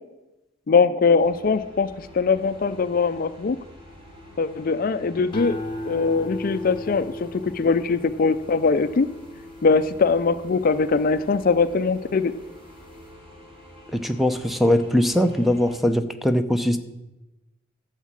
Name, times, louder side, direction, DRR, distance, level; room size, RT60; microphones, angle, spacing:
voice 1, 0.7-3.6 4.4-5.6 5.9-9.1 9.6-12.3, left 4 dB, 45° left, 13 dB, 0.4 m, -21 dB
sound 1, 1.2-15.8, left 1 dB, 30° right, 2.5 m, -47 dB
sound 2, 5.3-11.8 12.3-12.8, left 1 dB, 25° left, 0.9 m, -37 dB
voice 2, 13.9-16.8, left 1 dB, ahead, 8 dB, 0.6 m, -21 dB
12.0 x 7.3 x 7.4 m, 1.0 s
head